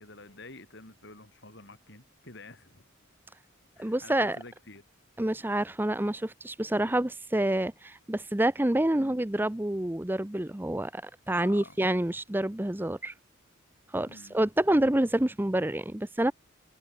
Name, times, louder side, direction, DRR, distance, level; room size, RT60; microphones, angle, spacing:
voice 1, 0.0-2.9 3.8-4.8 8.9-9.2 11.4-11.8 14.1-14.4, left 2 dB, 55° left, 7.8 m, -49 dB
voice 2, 3.8-4.4 5.2-11.0 11.3-13.1 13.9-16.3, right 1 dB, 10° right, 0.6 m, -27 dB
head